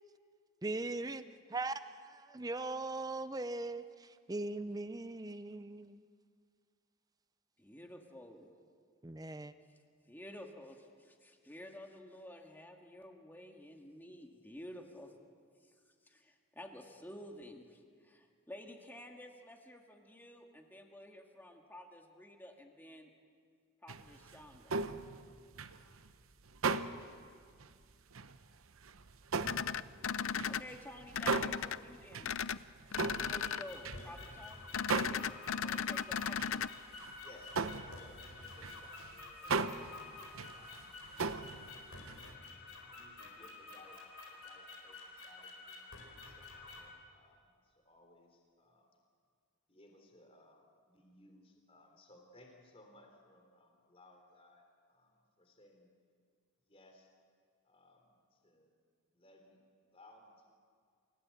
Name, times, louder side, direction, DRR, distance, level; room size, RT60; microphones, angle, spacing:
voice 1, 0.6-1.2 1.5-6.0 9.0-9.5, right 2 dB, 15° right, 0.6 m, -40 dB
voice 2, 7.6-8.5 9.6-9.8 10.1-15.1 15.6-23.1 23.8-24.7 30.5-32.3 33.0-34.7 35.5-36.4, left 1 dB, 10° left, 1.8 m, -52 dB
sound 1, 23.9-27.2 27.6-27.7 28.1-28.4 28.8-34.5 34.9-35.4 35.6-35.7 36.2-36.6 36.9-37.2 37.4-42.3, right 4 dB, 70° right, 0.9 m, -38 dB
sound 2, 29.4-30.6 31.1-31.8 32.2-32.6 32.9-33.6 34.7-36.7, left 7 dB, 65° left, 0.5 m, -36 dB
sound 3, 32.9-46.9, left 3 dB, 80° left, 4.5 m, -50 dB
voice 3, 37.2-41.9 42.9-44.0 44.3-49.0 49.7-55.9 56.6-57.1 57.6-58.7 59.1-60.5, left 1 dB, 25° left, 3.5 m, -62 dB
28.0 x 17.0 x 8.7 m
head